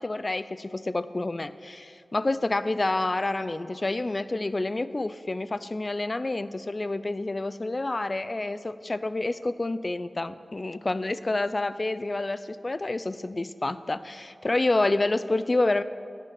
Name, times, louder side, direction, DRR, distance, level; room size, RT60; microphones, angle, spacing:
voice 1, 0.0-15.8, left 2 dB, 40° left, 14 dB, 0.3 m, -28 dB
10.5 x 9.0 x 4.1 m, 2.4 s
wide cardioid pair, 75°, 0 cm